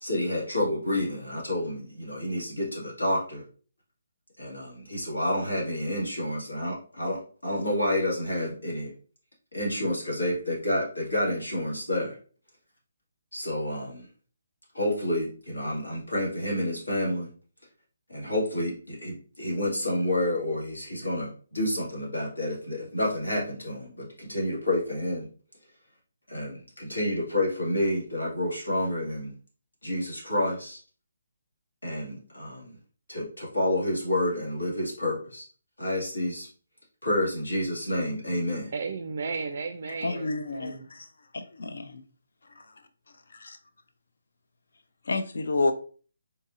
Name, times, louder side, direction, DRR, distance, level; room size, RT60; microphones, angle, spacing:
voice 1, 0.0-3.4 4.4-8.9 9.5-12.2 13.3-14.1 14.7-17.3 18.1-25.3 26.3-29.3 29.8-30.8 31.8-32.7 33.1-35.4 35.8-36.5 37.0-38.7, left 1 dB, 90° left, 1.7 m, -29 dB
voice 2, 38.7-40.9, right 4 dB, 55° right, 0.3 m, -34 dB
voice 3, 40.0-41.1 41.3-42.0 43.4-43.6 45.1-45.7, left 3 dB, 65° left, 0.5 m, -29 dB
3.9 x 2.7 x 2.5 m
figure-of-eight pair, 145°, 0 cm